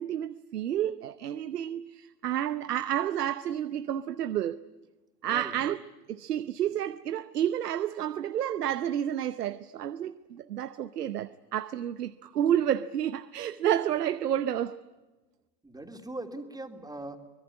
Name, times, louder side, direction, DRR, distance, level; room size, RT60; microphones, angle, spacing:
voice 1, 0.0-4.6 5.2-5.8 6.1-14.8, right 10 dB, 85° right, 0.9 m, -30 dB
voice 2, 15.6-17.2, right 2 dB, 10° right, 3.2 m, -40 dB
25.0 x 21.0 x 9.6 m
hypercardioid pair, 85°, 46 cm